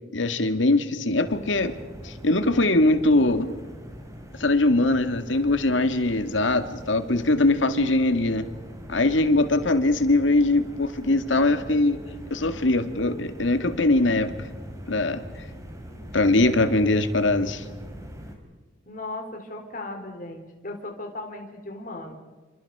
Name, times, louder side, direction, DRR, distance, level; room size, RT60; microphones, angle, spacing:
voice 1, 0.1-1.8 2.0-3.5 4.4-8.5 8.9-12.0 12.3-14.5 14.9-15.2 16.1-17.6, left 2 dB, 75° left, 9 dB, 2.0 m, -22 dB
sound 1, 1.2-18.4, equal, 15° right, 3.8 m, -42 dB
voice 2, 18.9-22.1, left 2 dB, 45° left, 3 dB, 4.1 m, -37 dB
28.5 x 26.5 x 4.9 m, 1.3 s
head